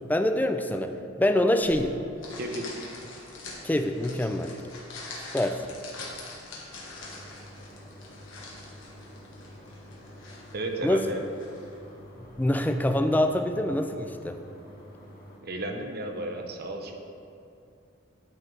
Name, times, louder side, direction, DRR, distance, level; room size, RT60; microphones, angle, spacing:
voice 1, 0.1-2.0 3.6-4.5 5.3-5.6 10.8-11.1 12.4-14.4, left 1 dB, 10° left, 6 dB, 0.3 m, -25 dB
sound 1, 1.6-13.0, left 2 dB, 75° left, 1.3 m, -45 dB
voice 2, 2.4-2.7 10.5-11.2 15.4-17.0, right 1 dB, 55° right, 3 dB, 0.7 m, -33 dB
sound 2, 7.0-15.4, equal, 50° left, 1.1 m, -49 dB
11.5 x 4.4 x 3.3 m, 2.6 s
head